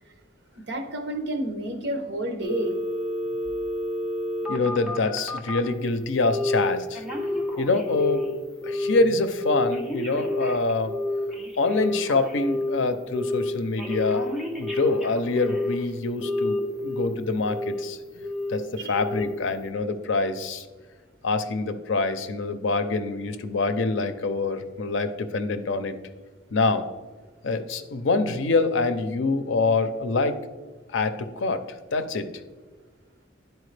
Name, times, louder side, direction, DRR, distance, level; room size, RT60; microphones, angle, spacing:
voice 1, 0.6-2.8 18.1-18.2 18.8-19.0, right 1 dB, 65° right, 5 dB, 0.9 m, -30 dB
Telephone, 2.4-5.7 6.3-6.7 6.9-8.3 8.6-9.0 9.4-12.8 13.1-13.5 13.8-15.8 16.2-17.1 17.4-17.8 18.2-18.6 18.9-19.3 19.7-19.8, left 1 dB, 5° right, 1.0 m, -29 dB
voice 2, 4.5-7.0 7.6-8.3 8.6-10.9 11.6-14.2 14.6-18.0 18.5-20.7 21.2-26.0 26.5-26.9 27.4-30.3 30.9-32.3, left 3 dB, 75° left, 10 dB, 0.5 m, -25 dB
10.5 x 4.5 x 3.3 m, 1.3 s
head